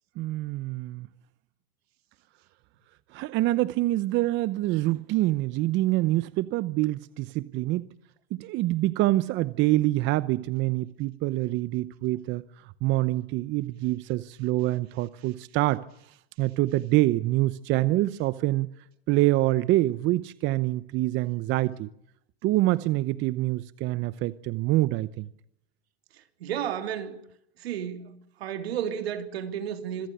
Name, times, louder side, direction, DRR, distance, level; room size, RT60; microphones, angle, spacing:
voice 1, 0.2-1.1 3.1-7.9 8.3-15.9 16.4-18.7 19.1-21.9 22.4-25.3, right 17 dB, 40° right, 0.9 m, -26 dB
voice 2, 26.4-27.2 27.6-28.1 28.4-30.1, right 9 dB, 80° right, 3.3 m, -32 dB
26.0 x 15.5 x 10.0 m
supercardioid pair, 130°, 31 cm